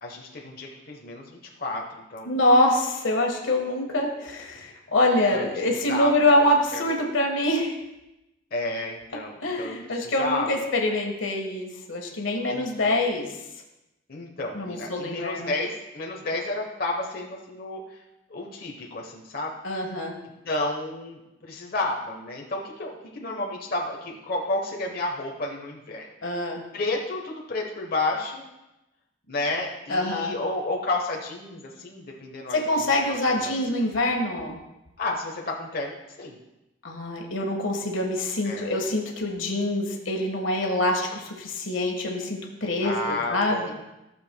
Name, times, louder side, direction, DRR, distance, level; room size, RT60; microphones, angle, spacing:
voice 1, 0.0-2.3 5.3-5.4 5.9-6.1 6.7-6.8 8.5-9.7 10.0-10.7 12.5-13.0 14.1-18.0 18.3-19.5 20.4-26.1 26.7-28.4 29.3-33.0 33.4-33.7 35.0-36.4 38.4-38.7 42.8-43.7, left 2 dB, 50° left, 0 dB, 1.0 m, -31 dB
voice 2, 2.3-7.7 9.4-13.3 14.5-15.5 19.6-20.1 26.2-26.6 29.9-30.3 32.5-34.6 36.8-43.7, left 1 dB, 90° left, 1 dB, 1.4 m, -25 dB
15.0 x 6.9 x 2.2 m, 0.94 s
head